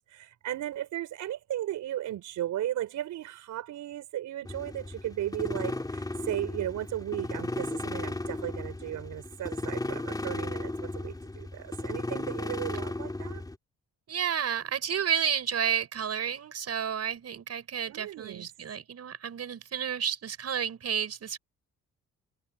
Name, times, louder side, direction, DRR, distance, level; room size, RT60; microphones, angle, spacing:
voice 1, 0.0-13.4 17.8-18.5, right 12 dB, 80° right, 4.3 m, -36 dB
sound 1, 4.5-13.6, left 2 dB, 10° left, 3.5 m, -35 dB
voice 2, 14.1-21.4, right 8 dB, 55° right, 6.4 m, -31 dB
cardioid pair, 90°, 30 cm